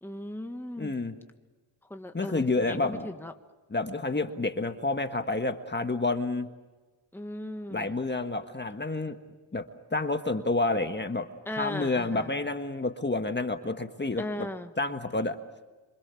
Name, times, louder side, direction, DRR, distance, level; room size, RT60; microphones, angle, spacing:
voice 1, 0.0-0.9 1.9-3.3 7.1-7.9 11.4-12.3 14.2-14.7, left 1 dB, 5° left, 6 dB, 1.5 m, -37 dB
voice 2, 0.8-1.1 2.1-3.1 3.7-6.5 7.7-9.2 9.5-14.5 14.8-15.4, left 2 dB, 20° left, 7 dB, 1.6 m, -29 dB
27.0 x 26.0 x 7.1 m, 1.2 s
cardioid pair, 90°, 47 cm